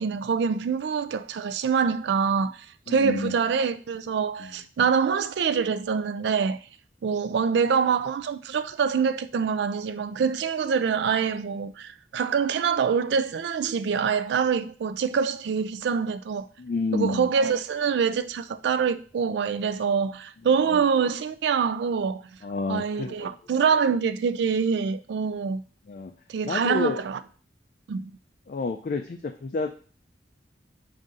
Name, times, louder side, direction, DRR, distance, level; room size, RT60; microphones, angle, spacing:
voice 1, 0.0-6.6 7.0-16.5 16.9-22.2 22.7-25.6 26.3-27.2 27.9-28.2, right 6 dB, 75° right, 0.3 m, -25 dB
voice 2, 2.9-3.3 4.4-4.5 16.6-17.3 22.4-23.3 25.9-26.1 26.4-27.0 28.5-29.7, left 3 dB, 50° left, 0.3 m, -29 dB
5.3 x 2.6 x 3.7 m
head